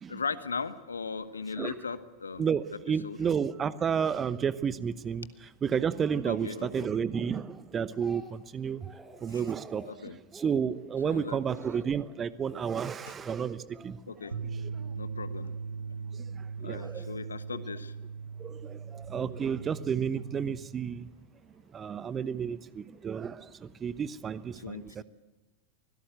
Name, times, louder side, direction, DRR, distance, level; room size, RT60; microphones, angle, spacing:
voice 1, 0.1-2.5 3.0-3.2 6.2-6.9 9.3-9.4 9.9-10.2 11.0-11.4 14.1-14.4 15.0-15.5 16.6-17.9 24.6-25.0, left 5 dB, 75° left, 14 dB, 1.2 m, -38 dB
voice 2, 2.4-5.3 5.6-8.9 9.2-9.9 10.3-14.0 14.5-14.6 16.1-17.2 18.4-21.1 21.7-25.0, right 7 dB, 20° right, 17 dB, 0.9 m, -31 dB
Speech, 7.5-8.5 8.8-9.2 9.6-9.9 10.3-10.6 11.0-11.3 11.7-12.0 12.4-12.8 13.1-14.0 14.7-15.0, right 2 dB, 5° right, 2.6 m, -51 dB
sound 1, 14.3-20.6, right 5 dB, 75° right, 1.7 m, -39 dB
24.5 x 17.5 x 8.0 m, 1.2 s
figure-of-eight pair, 90°, 0 cm